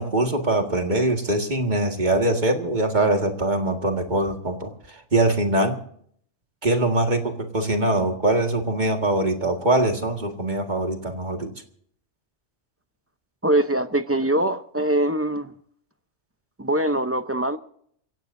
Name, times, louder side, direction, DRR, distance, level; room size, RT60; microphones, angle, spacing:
voice 1, 0.0-5.8 6.6-11.5, right 2 dB, 40° right, 2.0 m, -23 dB
voice 2, 13.4-15.5 16.6-17.6, right 1 dB, 15° right, 0.6 m, -23 dB
27.5 x 16.5 x 2.7 m
omnidirectional pair, 1.2 m